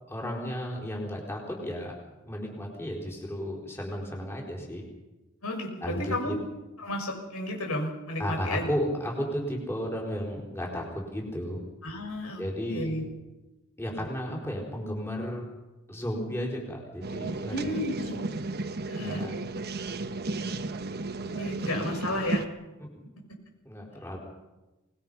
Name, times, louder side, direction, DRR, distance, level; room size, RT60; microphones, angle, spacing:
voice 1, 0.1-1.9 2.2-4.8 5.8-6.3 8.2-11.6 12.4-12.9 13.8-15.5 15.9-17.7 19.0-19.3 23.6-24.2, equal, 10° left, -1 dB, 4.7 m, -33 dB
voice 2, 5.4-6.3 6.8-8.7 11.8-12.4 12.7-13.1 14.0-14.1 17.5-18.2 18.9-19.2 21.2-22.5, left 1 dB, 90° left, 1 dB, 6.8 m, -32 dB
sound 1, 17.0-22.5, right 3 dB, 50° right, 1.1 m, -33 dB
24.5 x 20.5 x 5.7 m, 1.1 s
head